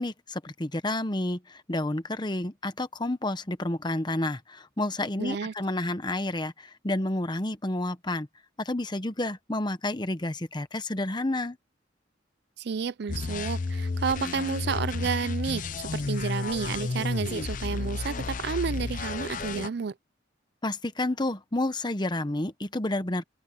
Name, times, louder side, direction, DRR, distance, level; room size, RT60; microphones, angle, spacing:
voice 1, 0.0-1.4 1.7-6.5 6.8-8.3 8.6-11.6 20.6-23.2, left 1 dB, 20° left, 1.0 m, -30 dB
voice 2, 5.2-5.5 12.6-19.9, right 5 dB, 55° right, 0.4 m, -31 dB
sound 1, 13.1-19.7, left 3 dB, 40° left, 0.5 m, -32 dB
head